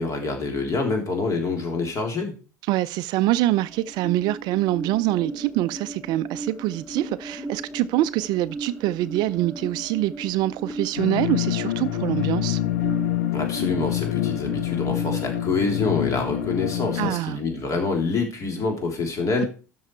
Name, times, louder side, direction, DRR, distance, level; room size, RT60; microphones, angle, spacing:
voice 1, 0.0-2.3 13.3-19.5, left 4 dB, 35° left, 3.4 m, -26 dB
voice 2, 2.7-12.6 17.0-17.4, right 15 dB, 50° right, 0.5 m, -25 dB
sound 1, 3.2-18.2, right 2 dB, 5° left, 2.8 m, -37 dB
sound 2, 11.0-17.1, left 15 dB, 70° left, 0.7 m, -26 dB
13.0 x 5.5 x 4.6 m
figure-of-eight pair, 70°, 9 cm